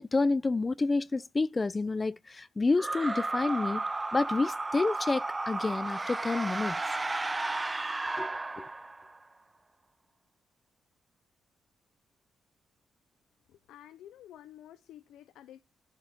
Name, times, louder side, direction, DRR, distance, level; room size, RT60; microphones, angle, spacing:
voice 1, 0.0-3.8 4.1-6.8 8.2-8.3 8.6-8.7, left 3 dB, 30° left, 0.6 m, -29 dB
sound 1, 2.8-9.2, right 2 dB, 25° right, 0.4 m, -33 dB
voice 2, 13.5-15.6, left 12 dB, 85° left, 0.6 m, -51 dB
11.0 x 4.8 x 3.5 m
supercardioid pair, 60°, 0 cm